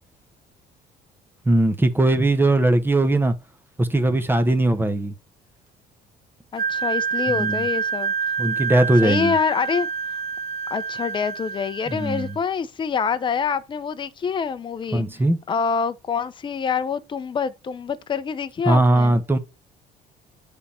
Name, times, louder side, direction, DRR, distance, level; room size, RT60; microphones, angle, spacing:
voice 1, 1.5-3.3 3.8-5.1 7.3-7.5 8.4-9.3 11.9-12.3 14.9-15.4 18.7-19.4, right 2 dB, 10° right, 0.9 m, -19 dB
voice 2, 6.5-8.1 9.0-9.9 10.7-15.0 15.5-19.1, left 6 dB, 30° left, 0.6 m, -26 dB
Wind instrument woodwind instrument, 6.6-12.4, right 6 dB, 70° right, 1.5 m, -27 dB
9.9 x 3.6 x 4.3 m
cardioid pair, 110°, 17 cm